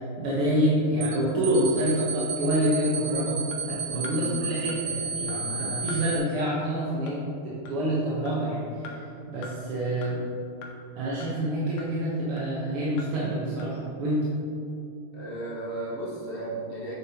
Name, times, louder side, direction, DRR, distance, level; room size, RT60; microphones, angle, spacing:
voice 1, 0.2-3.4 3.7-9.0 9.3-10.2 11.0-14.2, right 1 dB, 85° right, -7 dB, 2.1 m, -27 dB
sound 1, 1.0-1.2 1.4-6.2, right 5 dB, 65° right, 0.9 m, -32 dB
sound 2, 3.5-3.6 4.0-4.2 4.7-4.8 5.3-5.4 5.9-6.0 6.5-6.6 7.1-7.2 7.7-7.8 8.3-8.4 8.8-9.0 9.4-9.5 10.0-10.1 10.6-10.7 11.2-11.3 11.8-11.9 12.4-12.5 13.0-13.1 13.6-13.7, left 5 dB, 80° left, 1.8 m, -42 dB
voice 2, 15.1-17.0, right 1 dB, 35° left, -6 dB, 1.0 m, -35 dB
8.9 x 7.0 x 2.9 m, 2.7 s
omnidirectional pair, 2.4 m